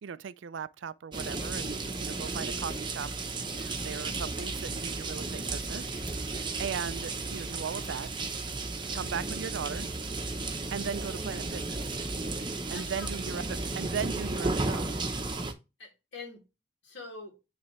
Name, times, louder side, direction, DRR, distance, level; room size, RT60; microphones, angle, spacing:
voice 1, 0.0-3.1 3.8-8.1 8.9-9.9 10.7-11.8 12.7-14.9, right 7 dB, 75° right, 0.4 m, -38 dB
sound 1, 1.1-15.5, right 3 dB, 25° right, 0.8 m, -34 dB
voice 2, 1.7-2.0 3.4-3.8 12.7-13.1 15.8-16.4 16.8-17.3, left 3 dB, 65° left, 2.5 m, -45 dB
9.6 x 3.3 x 3.2 m
head